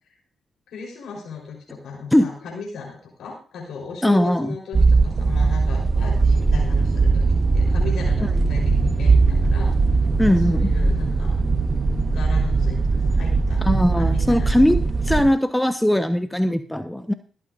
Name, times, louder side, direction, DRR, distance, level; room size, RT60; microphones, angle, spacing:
voice 1, 0.7-7.3 7.5-9.7 10.3-11.4 12.1-13.6 14.0-14.5, left 5 dB, 75° left, -1 dB, 3.9 m, -36 dB
voice 2, 4.0-4.5 10.2-10.7 13.6-14.8 15.0-17.1, left 1 dB, 5° left, 8 dB, 1.0 m, -19 dB
sound 1, 4.7-15.3, right 3 dB, 45° right, 1.2 m, -20 dB
25.5 x 8.8 x 2.6 m, 0.38 s
supercardioid pair, 45°, 0 cm